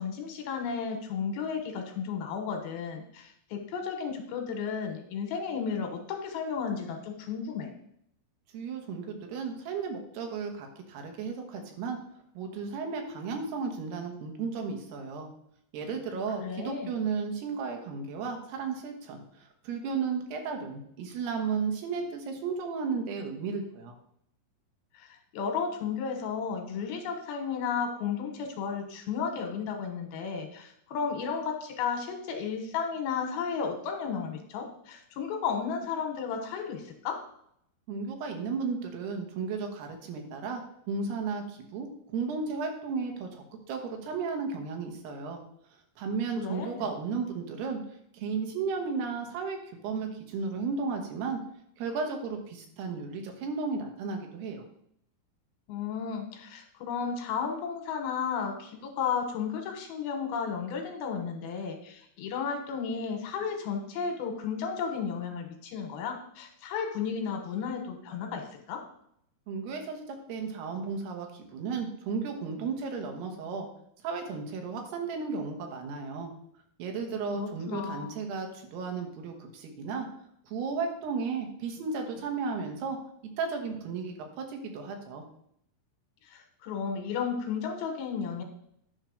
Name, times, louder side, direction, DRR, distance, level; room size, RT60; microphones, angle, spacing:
voice 1, 0.0-7.7 16.4-16.9 24.9-37.2 46.4-46.8 55.7-68.8 77.3-78.2 86.3-88.4, left 6 dB, 75° left, 4 dB, 3.0 m, -33 dB
voice 2, 8.5-12.0 12.3-15.3 15.7-23.9 37.9-41.9 42.1-45.4 46.0-47.8 48.1-51.4 51.8-54.6 69.5-73.7 74.0-76.3 76.8-80.1 80.5-83.0 83.4-85.2, right 5 dB, 85° right, 3 dB, 3.4 m, -34 dB
10.5 x 4.5 x 6.5 m, 0.71 s
omnidirectional pair, 4.5 m